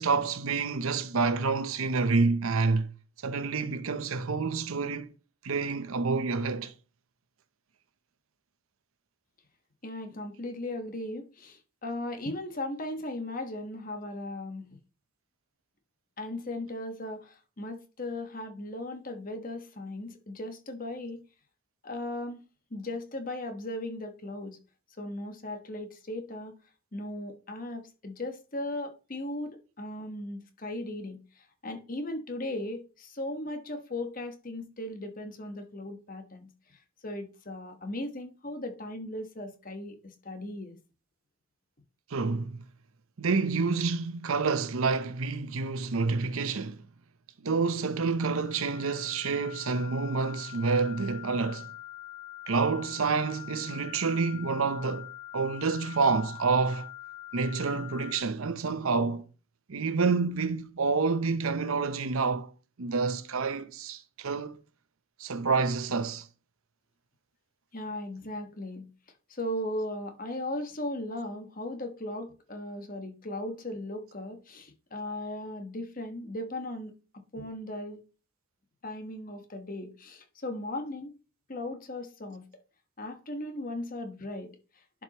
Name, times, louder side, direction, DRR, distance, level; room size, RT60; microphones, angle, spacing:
voice 1, 0.0-2.9 3.2-5.1 5.4-6.7 42.1-42.6 43.2-46.8 47.4-51.7 52.5-56.9 57.3-59.2 59.7-62.5 62.8-64.6 65.2-66.2, right 4 dB, 75° right, 0.7 m, -28 dB
voice 2, 9.8-14.8 16.2-21.2 21.8-22.4 22.7-24.6 25.0-26.5 26.9-40.8 67.7-68.9 69.3-78.0 78.8-81.1 81.5-82.5 83.0-85.0, left 1 dB, 40° left, 1.2 m, -37 dB
sound 1, 48.3-58.2, left 15 dB, 60° left, 3.5 m, -44 dB
11.0 x 5.0 x 3.0 m
head